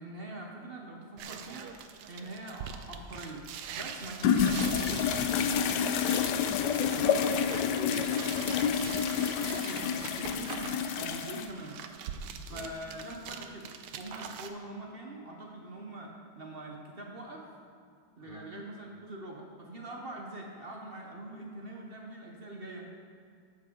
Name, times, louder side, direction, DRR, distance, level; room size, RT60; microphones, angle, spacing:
voice 1, 0.0-1.7 2.1-3.5 3.8-5.4 9.4-11.8 12.3-13.7 14.0-17.5 18.2-22.9, right 1 dB, 45° right, 0 dB, 0.8 m, -43 dB
sound 1, 1.2-14.5, right 7 dB, 85° right, 1.2 m, -43 dB
sound 2, 4.2-11.5, left 7 dB, 85° left, 1.2 m, -29 dB
voice 2, 6.8-8.6 12.5-12.7 18.2-18.4, left 3 dB, 65° left, 1 dB, 0.5 m, -40 dB
12.0 x 7.6 x 3.8 m, 2.3 s
omnidirectional pair, 1.8 m